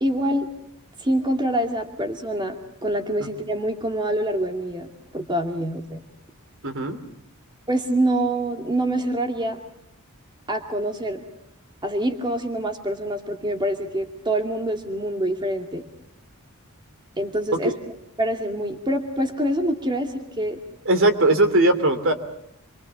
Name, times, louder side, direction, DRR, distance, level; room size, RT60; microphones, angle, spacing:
voice 1, 0.0-0.5 1.0-2.6 2.8-6.0 7.7-9.6 10.5-11.2 11.8-15.8 17.2-17.7 18.2-20.6, right 1 dB, 20° right, 5 dB, 2.4 m, -25 dB
voice 2, 6.6-7.0 17.6-17.8 20.8-22.1, right 2 dB, 60° right, 9 dB, 3.0 m, -19 dB
27.5 x 24.0 x 7.1 m, 0.73 s
head